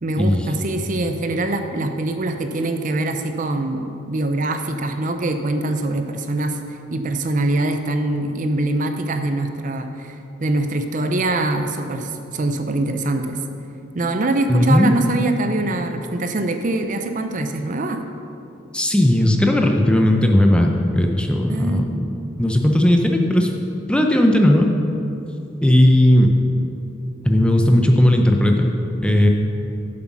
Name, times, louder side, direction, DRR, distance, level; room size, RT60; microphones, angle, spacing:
voice 1, 0.0-6.6 6.9-13.4 13.9-18.0 21.5-21.9, right 2 dB, 40° right, 6 dB, 0.5 m, -23 dB
voice 2, 14.5-14.9 18.7-22.1 22.4-23.5 23.9-24.7 25.6-26.3 27.2-28.7 29.0-29.3, left 1 dB, 5° left, 2 dB, 0.5 m, -16 dB
7.8 x 7.6 x 6.0 m, 2.8 s
head